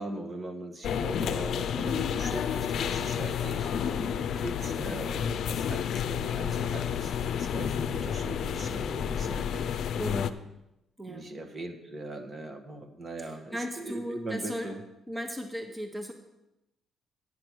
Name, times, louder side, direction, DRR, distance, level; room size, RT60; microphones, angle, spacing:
voice 1, 0.0-9.8 11.1-14.8, right 2 dB, 35° right, 5 dB, 1.3 m, -40 dB
sound 1, 0.8-10.3, left 8 dB, 70° left, 0.5 m, -30 dB
voice 2, 10.0-10.4 11.0-11.3 13.2-14.7 15.1-16.1, equal, 10° right, 5 dB, 1.2 m, -36 dB
9.6 x 6.9 x 6.1 m, 0.91 s
cardioid pair, 90°, 0 cm